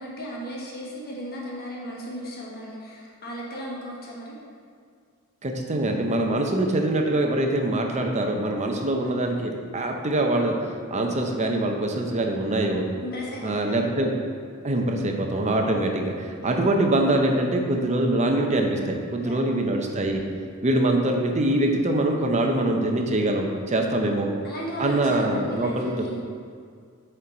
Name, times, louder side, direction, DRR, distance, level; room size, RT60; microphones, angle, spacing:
voice 1, 0.0-4.4 13.0-13.8 16.4-16.7 19.2-19.6 24.4-26.2, equal, 50° left, -4 dB, 1.2 m, -35 dB
voice 2, 5.4-10.6 10.9-12.8 13.4-14.2 14.6-20.2 20.6-24.3 24.8-25.9, right 1 dB, 35° right, 2 dB, 0.6 m, -24 dB
7.0 x 4.5 x 3.8 m, 2.1 s
head